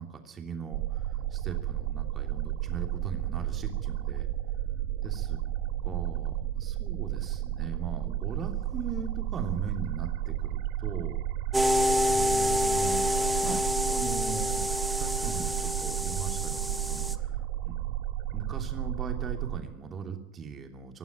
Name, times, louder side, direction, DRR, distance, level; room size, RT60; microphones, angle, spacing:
voice 1, 0.0-4.3 5.0-5.4 5.8-11.2 12.0-13.1 13.4-14.6 14.9-17.8 18.3-21.0, right 5 dB, 20° right, 5 dB, 3.0 m, -39 dB
sound 1, 0.7-19.6, right 12 dB, 45° right, 0.9 m, -32 dB
sound 2, 11.5-17.1, left 1 dB, 5° right, 1.1 m, -28 dB
25.0 x 11.5 x 9.0 m, 0.84 s
figure-of-eight pair, 90°, 0 cm